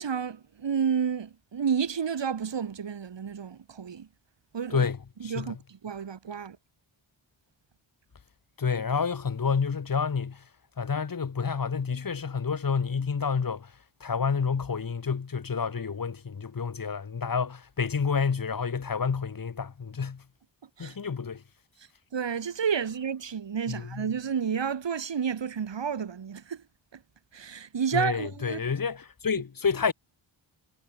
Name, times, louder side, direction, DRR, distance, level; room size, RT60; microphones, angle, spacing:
voice 1, 0.0-4.1 4.5-4.9 5.2-6.6 20.8-21.0 22.1-26.6 26.9-27.0 27.3-28.6, right 7 dB, 60° right, 2.5 m, -31 dB
voice 2, 5.2-5.5 8.6-10.4 10.8-13.7 14.0-20.2 20.8-21.4 23.7-24.0 27.9-29.9, left 5 dB, 45° left, 2.0 m, -29 dB
wide cardioid pair, 165°, 49 cm